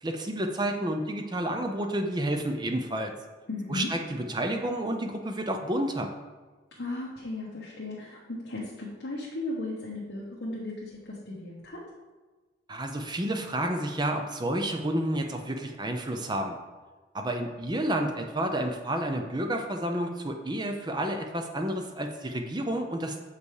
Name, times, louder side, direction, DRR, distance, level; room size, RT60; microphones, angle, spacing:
voice 1, 0.0-3.1 3.7-6.1 12.7-16.6 17.1-23.2, right 1 dB, 20° right, 4 dB, 0.6 m, -30 dB
voice 2, 3.5-3.9 6.8-11.8, left 2 dB, 55° left, -4 dB, 1.1 m, -36 dB
6.8 x 5.3 x 4.8 m, 1.3 s
head